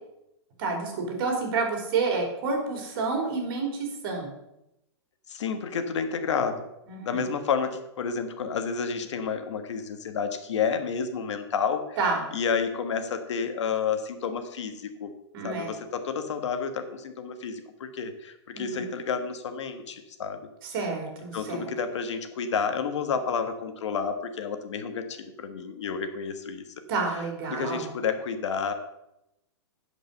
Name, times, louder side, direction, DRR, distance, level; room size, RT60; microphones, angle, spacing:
voice 1, 0.6-4.3 6.9-7.2 12.0-12.2 15.3-15.7 18.5-18.8 20.7-21.7 26.9-27.9, right 4 dB, 50° right, 2 dB, 3.3 m, -29 dB
voice 2, 5.3-6.6 7.0-12.0 12.3-15.1 15.4-20.4 21.3-26.6 27.5-28.7, left 6 dB, 80° left, 8 dB, 1.4 m, -30 dB
11.0 x 5.4 x 6.4 m, 0.85 s
hypercardioid pair, 150°, 15 cm